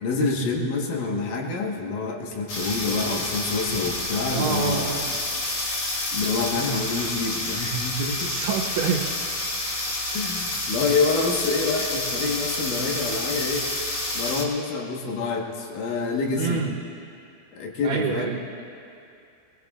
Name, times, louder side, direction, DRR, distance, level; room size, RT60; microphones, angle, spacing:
voice 1, 0.0-5.1 6.1-8.3 10.1-13.6 14.1-16.6 17.5-18.4, left 3 dB, 70° left, 0 dB, 2.0 m, -27 dB
sound 1, 2.5-14.4, left 2 dB, 50° left, 2.4 m, -29 dB
voice 2, 4.3-5.0 8.2-9.1 16.3-16.8 17.8-18.6, right 6 dB, 75° right, -1 dB, 3.2 m, -27 dB
22.0 x 21.5 x 2.4 m, 2.6 s
omnidirectional pair, 5.6 m